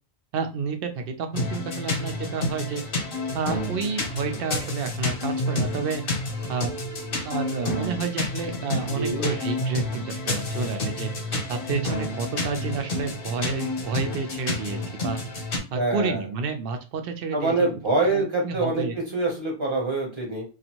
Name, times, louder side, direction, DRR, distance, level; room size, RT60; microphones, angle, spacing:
voice 1, 0.3-2.8 3.3-6.0 6.5-6.7 7.2-11.1 11.5-15.2 15.7-17.5 18.1-18.9, right 5 dB, 65° right, 7 dB, 0.7 m, -30 dB
sound 1, 1.3-15.6, left 2 dB, 55° left, 1.0 m, -29 dB
voice 2, 8.9-9.3 15.7-16.2 17.3-18.9 19.1-20.4, right 2 dB, 30° right, -1 dB, 0.8 m, -25 dB
2.5 x 2.4 x 2.9 m, 0.33 s
omnidirectional pair, 1.1 m